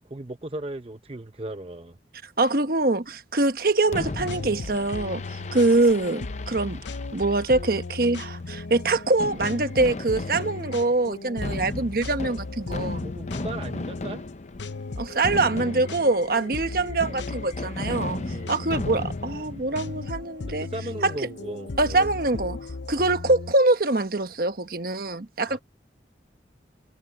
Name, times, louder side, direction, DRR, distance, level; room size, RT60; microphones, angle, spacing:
voice 1, 0.0-2.0 5.4-5.6 13.0-14.2 18.1-18.7 20.6-22.1 25.4-25.6, right 1 dB, 35° right, 0.8 m, -37 dB
voice 2, 2.4-5.2 5.5-6.8 7.1-13.1 15.0-18.2 18.5-20.7 21.0-21.1 21.8-22.6 22.9-25.6, right 2 dB, 55° right, 1.2 m, -24 dB
sound 1, 3.9-23.5, left 3 dB, 90° left, 0.8 m, -37 dB
Fireworks, 3.9-20.1, left 2 dB, 40° left, 0.7 m, -36 dB
head